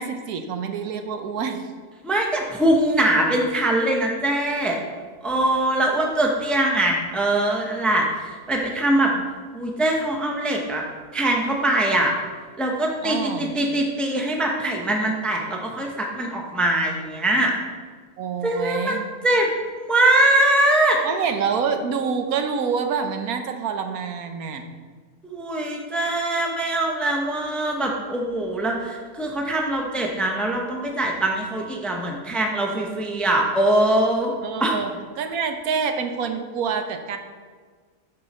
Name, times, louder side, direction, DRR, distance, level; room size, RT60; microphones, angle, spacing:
voice 1, 0.0-1.6 9.1-9.2 13.0-13.5 18.2-19.0 21.0-24.6 34.4-34.9 35.2-37.2, right 6 dB, 80° right, 6 dB, 1.2 m, -27 dB
voice 2, 2.0-4.8 5.2-9.1 9.5-10.8 11.1-12.1 12.6-17.5 18.4-19.5 19.8-21.0 25.2-34.3 34.6-34.7, right 1 dB, ahead, 0 dB, 0.7 m, -22 dB
11.5 x 4.6 x 4.2 m, 1.5 s
omnidirectional pair, 1.5 m